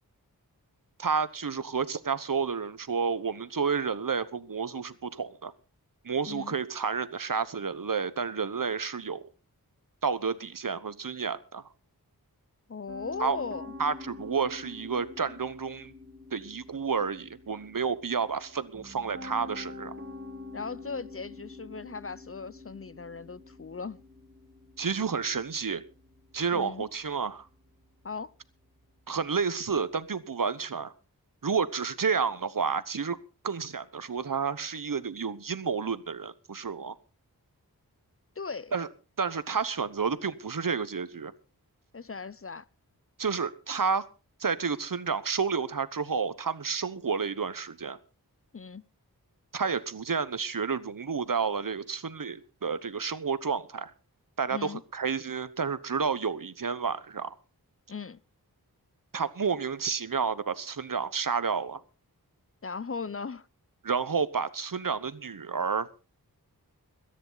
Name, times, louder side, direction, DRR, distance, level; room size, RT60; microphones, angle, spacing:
voice 1, 1.0-5.5 6.0-9.3 10.0-11.6 13.2-13.4 13.8-15.9 16.3-19.9 24.8-25.8 26.3-27.5 29.1-30.9 31.4-33.2 33.4-36.9 38.7-38.9 39.2-41.3 43.2-44.1 44.4-48.0 49.5-53.9 54.4-57.3 59.1-61.8 63.8-65.9, right 5 dB, 60° right, 1.1 m, -30 dB
voice 2, 12.7-13.7 20.5-24.0 26.5-26.8 28.0-28.3 38.4-38.7 41.9-42.6 48.5-48.8 54.5-54.8 57.9-58.2 62.6-63.5, left 5 dB, 35° left, 0.6 m, -38 dB
Piano, 12.9-30.0, left 3 dB, 35° right, 2.4 m, -47 dB
22.0 x 10.0 x 4.0 m
wide cardioid pair, 45°, 37 cm